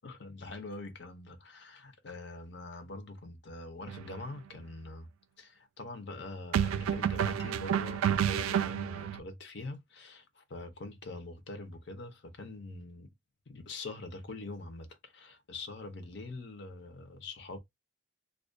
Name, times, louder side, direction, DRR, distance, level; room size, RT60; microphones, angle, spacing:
voice 1, 0.0-5.1 5.4-13.1 13.5-17.6, left 2 dB, 55° left, 0.6 m, -44 dB
sound 1, 3.9-4.1 6.5-9.2, right 9 dB, 85° right, 0.3 m, -30 dB
2.3 x 2.2 x 2.5 m
head